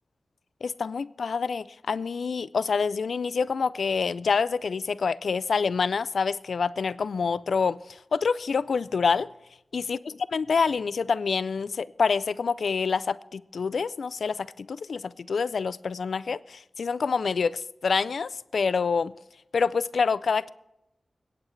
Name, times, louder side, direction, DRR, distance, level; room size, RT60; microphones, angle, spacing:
voice 1, 0.6-9.3 9.7-19.1 19.5-20.5, left 5 dB, 85° left, 0.3 m, -27 dB
24.0 x 8.7 x 3.2 m
cardioid pair, 50°, 0 cm